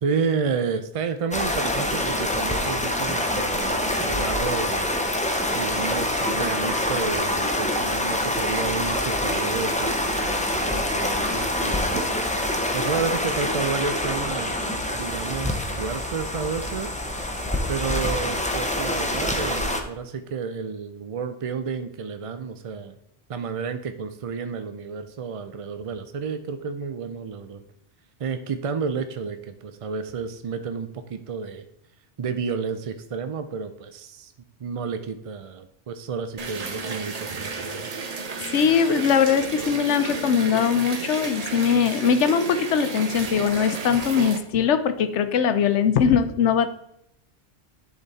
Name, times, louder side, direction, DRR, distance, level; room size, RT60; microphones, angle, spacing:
voice 1, 0.0-4.9 5.5-12.1 12.7-17.1 17.7-23.0 23.3-27.6 28.2-31.7 32.2-34.3 34.6-37.9, right 5 dB, 55° right, 9 dB, 0.3 m, -31 dB
sound 1, 1.3-19.8, left 1 dB, 10° left, 0.6 m, -26 dB
sound 2, 36.4-44.4, right 4 dB, 40° right, 0.8 m, -32 dB
voice 2, 38.5-46.7, left 7 dB, 85° left, 10 dB, 1.0 m, -21 dB
10.5 x 4.0 x 4.0 m, 0.77 s
omnidirectional pair, 1.2 m